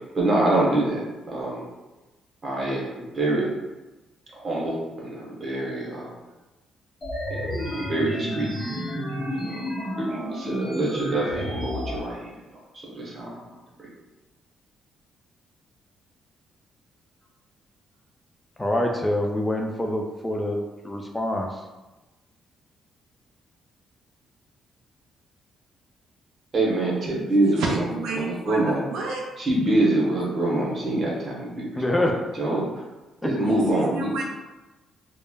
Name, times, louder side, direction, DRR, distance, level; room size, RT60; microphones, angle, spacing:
voice 1, 0.1-1.6 2.4-3.5 4.3-6.1 7.3-8.5 9.3-12.3 12.9-13.4 26.5-28.9 29.4-32.7 33.2-34.1, right 2 dB, 40° right, -4 dB, 1.0 m, -25 dB
sound 1, 7.0-12.0, equal, 30° left, 0.9 m, -31 dB
voice 2, 18.6-20.6 20.8-21.5 31.8-32.2 33.2-33.3, left 1 dB, 15° left, 2 dB, 0.3 m, -25 dB
voice 3, 27.4-29.2 33.4-34.2, right 2 dB, 85° right, -1 dB, 0.4 m, -29 dB
3.1 x 2.1 x 2.2 m, 1.1 s
cardioid pair, 90°, 0 cm